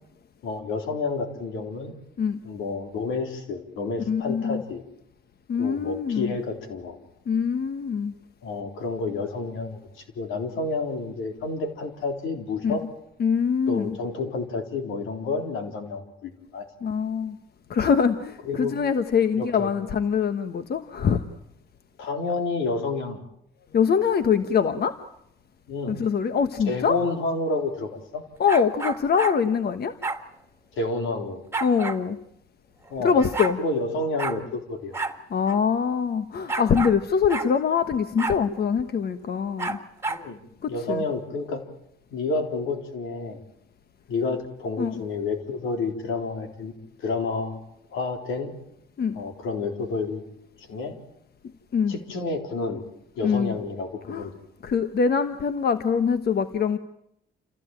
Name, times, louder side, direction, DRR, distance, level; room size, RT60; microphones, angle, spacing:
voice 1, 0.4-1.9 2.4-4.8 5.6-7.0 8.4-9.8 10.2-12.8 13.7-16.7 18.5-18.8 19.4-19.7 22.0-23.2 25.7-26.0 26.7-28.2 30.7-31.4 32.9-33.2 33.6-35.0 40.1-40.4 40.7-41.6 42.1-43.4 44.1-46.7 47.0-47.6 47.9-48.5 49.1-50.2 50.7-51.0 51.9-52.8 53.2-54.3, left 3 dB, 85° left, 5 dB, 3.8 m, -29 dB
voice 2, 4.1-4.6 5.5-6.3 7.3-8.1 12.6-12.8 13.2-14.0 16.8-17.4 17.7-21.2 23.7-25.0 25.9-27.0 28.4-29.9 31.6-32.2 33.0-33.6 35.3-39.8 40.6-41.0 44.8-44.9 49.0-49.2 51.7-51.9 53.2-53.5 54.1-54.3 54.6-56.8, left 6 dB, 55° left, 10 dB, 1.3 m, -23 dB
sound 1, 28.5-29.4 30.0-30.2 31.5-32.0 32.9-33.0 33.2-33.6 34.2-34.4 34.9-35.2 35.5-35.6 36.5-37.0 37.3-37.5 38.2-38.4 39.6-40.2, right 3 dB, 15° right, 2.2 m, -30 dB
28.5 x 15.5 x 9.0 m, 0.78 s
cardioid pair, 90°, 20 cm